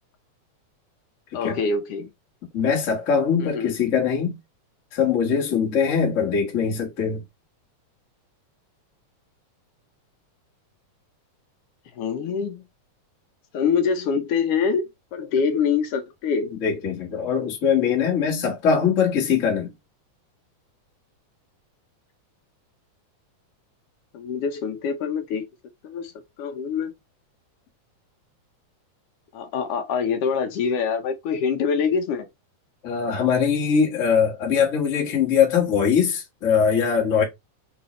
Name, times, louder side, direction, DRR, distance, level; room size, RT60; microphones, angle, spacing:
voice 1, 1.3-2.1 3.4-3.7 12.0-12.6 13.5-14.9 15.1-16.5 24.1-25.5 25.8-26.1 26.4-26.9 29.3-32.3, left 6 dB, 85° left, 1.3 m, -25 dB
voice 2, 2.5-4.4 4.9-7.2 15.3-15.4 16.5-19.7 32.8-37.2, left 6 dB, 40° left, 1.1 m, -22 dB
3.9 x 3.9 x 3.0 m
omnidirectional pair, 3.6 m